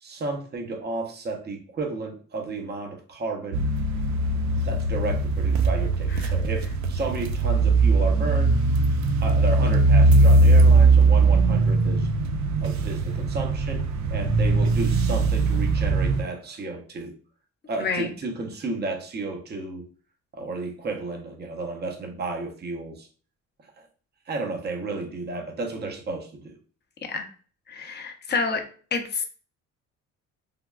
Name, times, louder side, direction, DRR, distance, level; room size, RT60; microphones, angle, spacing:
voice 1, 0.0-3.6 4.6-8.5 9.2-12.1 12.6-13.8 14.1-17.1 17.7-19.9 20.3-23.1 23.8-23.9 24.3-26.6, right 3 dB, 35° right, 2 dB, 0.7 m, -32 dB
sound 1, 3.5-16.2, right 3 dB, 65° right, 0.4 m, -20 dB
voice 2, 27.7-28.6 28.9-29.2, left 4 dB, 35° left, 3 dB, 0.6 m, -28 dB
3.5 x 2.2 x 2.2 m, 0.42 s
cardioid pair, 90°, 30 cm